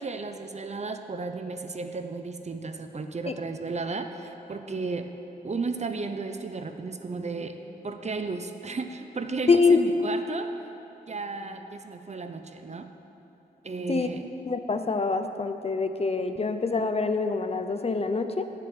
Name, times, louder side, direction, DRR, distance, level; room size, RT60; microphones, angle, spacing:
voice 1, 0.0-5.1 5.4-7.6 7.8-10.5 11.1-12.9 13.6-14.3, right 4 dB, 40° right, 7 dB, 0.7 m, -34 dB
voice 2, 9.5-9.8 13.9-14.1 14.5-18.4, left 4 dB, 35° left, 8 dB, 0.6 m, -25 dB
7.7 x 6.8 x 7.9 m, 3.0 s
cardioid pair, 60°, 17 cm